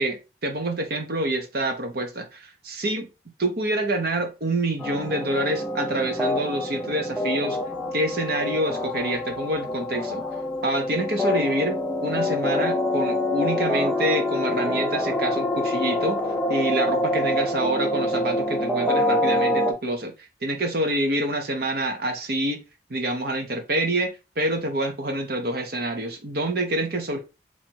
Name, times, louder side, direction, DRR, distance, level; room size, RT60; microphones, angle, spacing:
voice 1, 0.0-3.1 3.4-7.6 7.9-10.2 10.6-11.8 12.0-16.2 16.5-20.1 20.4-22.6 22.9-27.2, right 1 dB, 60° right, 0.9 m, -27 dB
sound 1, 4.8-19.7, left 1 dB, 5° left, 0.6 m, -26 dB
2.9 x 2.9 x 4.5 m
head